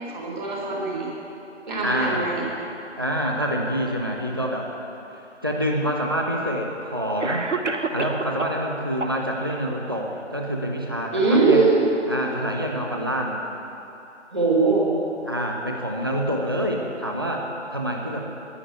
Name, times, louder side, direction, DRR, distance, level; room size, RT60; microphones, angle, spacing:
voice 1, 0.1-1.1 1.7-2.5 11.1-11.8 14.3-14.9, right 3 dB, 40° right, -3 dB, 3.9 m, -21 dB
voice 2, 1.8-2.5 3.0-4.7 5.1-7.5 7.9-11.6 12.1-13.4 15.3-18.3, equal, 20° right, 0 dB, 0.7 m, -27 dB
Cough, 7.2-8.6 9.0-9.6, right 3 dB, 80° right, 1.1 m, -28 dB
10.5 x 10.0 x 9.3 m, 2.9 s
figure-of-eight pair, 160°, 36 cm